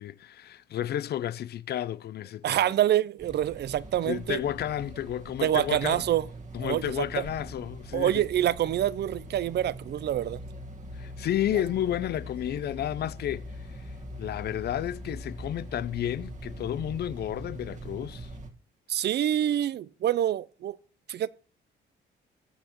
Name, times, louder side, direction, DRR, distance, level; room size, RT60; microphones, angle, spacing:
voice 1, 0.0-2.6 4.1-6.0 6.5-8.1 11.0-13.5 14.2-18.3, left 11 dB, 55° left, 0.4 m, -31 dB
voice 2, 2.4-4.4 5.4-6.3 6.6-7.3 7.9-10.4 11.5-11.6 18.9-20.8 21.1-21.3, right 11 dB, 55° right, 0.5 m, -26 dB
sound 1, 3.2-18.5, right 1 dB, 35° right, 1.4 m, -42 dB
20.0 x 7.8 x 3.0 m
cardioid pair, 90°, 20 cm